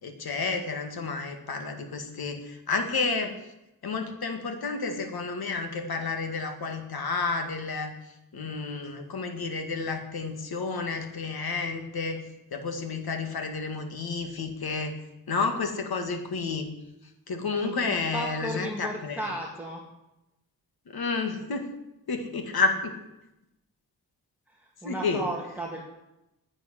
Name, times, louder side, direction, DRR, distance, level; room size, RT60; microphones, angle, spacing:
voice 1, 0.0-3.4 3.8-7.9 8.3-12.2 12.5-15.0 15.3-16.7 17.3-19.3 20.9-21.7 22.1-23.0 24.8-25.2, left 4 dB, 75° left, 6 dB, 2.1 m, -30 dB
voice 2, 17.6-19.8 24.5-25.9, right 1 dB, 5° right, -2 dB, 2.0 m, -35 dB
11.0 x 9.0 x 9.9 m, 0.92 s
wide cardioid pair, 130°, 37 cm